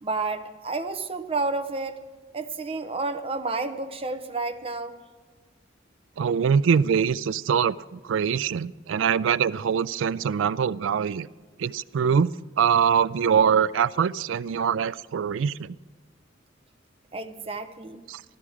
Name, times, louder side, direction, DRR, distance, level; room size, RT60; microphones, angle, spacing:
voice 1, 0.0-2.0 2.3-4.9 17.1-18.0, right 3 dB, 30° right, 8 dB, 0.8 m, -30 dB
voice 2, 6.2-11.3 11.6-15.8 18.1-18.2, right 7 dB, 80° right, 18 dB, 0.4 m, -23 dB
15.0 x 13.0 x 4.8 m, 1.4 s
head